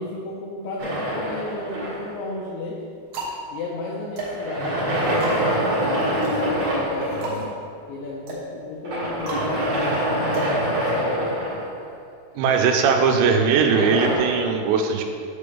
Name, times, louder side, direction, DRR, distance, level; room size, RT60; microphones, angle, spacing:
voice 1, 0.0-2.8 3.5-5.4 5.7-7.4 7.9-11.4, left 2 dB, 80° left, -4 dB, 2.6 m, -34 dB
sound 1, 0.8-2.3 4.2-7.4 8.8-12.0 13.5-14.2, equal, 55° right, 1.8 m, -25 dB
sound 2, 1.5-1.9 2.6-11.3, right 1 dB, 70° right, 2.1 m, -35 dB
sound 3, 6.9-7.4, left 4 dB, 65° left, 2.6 m, -40 dB
voice 2, 12.4-15.0, right 5 dB, 85° right, 4 dB, 3.4 m, -19 dB
7.6 x 6.9 x 3.4 m, 2.4 s
omnidirectional pair, 6.0 m